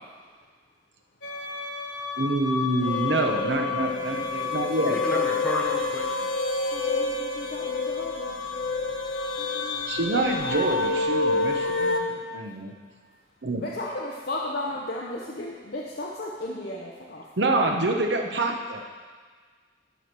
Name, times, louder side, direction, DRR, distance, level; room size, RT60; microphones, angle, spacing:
sound 1, 1.2-12.0, left 3 dB, 85° left, 1.2 m, -28 dB
voice 1, 2.2-5.2 9.9-12.7 13.4-13.6 17.4-18.8, right 2 dB, 70° right, 3 dB, 1.0 m, -27 dB
voice 2, 4.5-6.3, equal, 5° left, -4 dB, 1.5 m, -33 dB
voice 3, 6.7-8.3 9.4-11.0 13.5-17.2, left 1 dB, 55° left, -3 dB, 0.8 m, -35 dB
11.5 x 4.9 x 6.1 m, 1.5 s
head